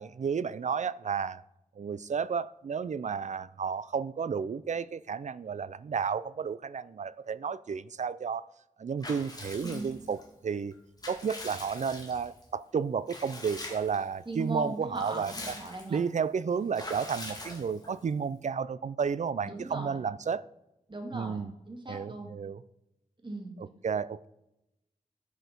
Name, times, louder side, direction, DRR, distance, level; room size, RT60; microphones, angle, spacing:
voice 1, 0.0-1.4 1.8-8.5 8.8-10.7 11.1-15.6 15.9-20.5 21.1-21.5 21.9-22.6 23.6-24.3, right 6 dB, 60° right, 0.4 m, -32 dB
Water / Bathtub (filling or washing) / Liquid, 9.0-10.2 10.7-12.4 13.1-14.0 14.4-14.5 14.8-16.0 16.7-18.0, left 1 dB, 30° left, 2.2 m, -43 dB
voice 2, 14.3-16.0 19.4-20.0 20.9-22.3 23.2-23.6, right 2 dB, 35° right, 2.3 m, -39 dB
10.5 x 6.3 x 5.2 m
wide cardioid pair, 85°, 14 cm